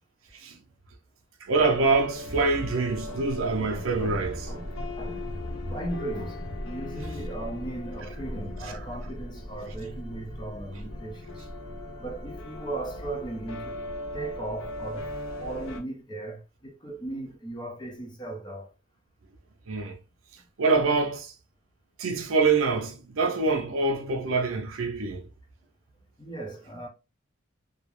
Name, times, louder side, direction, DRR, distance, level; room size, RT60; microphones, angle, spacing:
voice 1, 1.4-4.5 19.7-20.0 20.6-21.3 22.0-25.2, right 3 dB, 75° right, 0.5 m, -25 dB
sound 1, 1.5-15.8, left 1 dB, 65° left, 0.5 m, -38 dB
voice 2, 4.0-5.3 5.7-11.5 12.0-13.8 14.1-18.7 26.2-26.9, right 2 dB, 20° left, 0.5 m, -37 dB
2.3 x 2.0 x 3.0 m
head